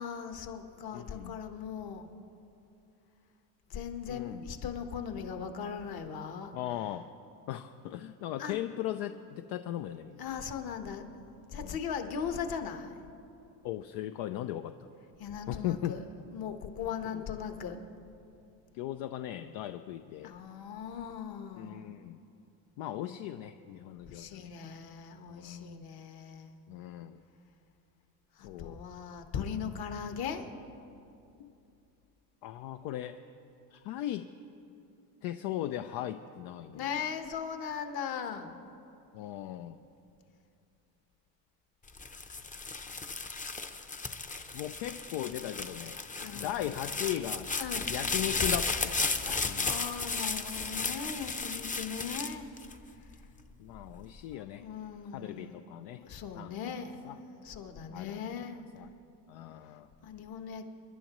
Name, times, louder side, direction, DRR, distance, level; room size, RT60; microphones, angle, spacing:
voice 1, 0.0-2.1 3.7-6.5 8.4-8.6 10.2-13.0 15.2-16.0 16.3-17.8 20.2-21.8 24.0-26.5 28.3-30.4 36.7-38.6 46.2-46.7 47.5-47.9 49.2-52.5 54.3-55.7 56.0-58.6 60.0-60.7, left 7 dB, 50° left, 6 dB, 1.3 m, -39 dB
voice 2, 0.9-1.3 4.1-4.4 6.5-7.0 7.5-10.2 11.6-11.7 13.6-14.9 15.5-16.0 17.1-17.2 18.7-20.3 21.6-22.2 22.8-24.5 25.3-25.8 26.7-27.2 28.4-28.8 31.4-31.5 32.4-33.2 33.7-34.3 35.2-37.0 39.1-39.8 44.5-46.0 46.3-47.5 47.9-48.9 49.2-49.7 53.6-54.6 55.1-56.0 56.4-56.6 57.0-57.2 57.9-58.3 58.7-58.9 59.3-59.9, left 12 dB, 70° left, 8 dB, 0.6 m, -38 dB
sound 1, 41.9-53.2 53.8-54.3, left 4 dB, 15° left, 0.7 m, -34 dB
27.0 x 11.0 x 3.1 m, 2.7 s
cardioid pair, 110°, 46 cm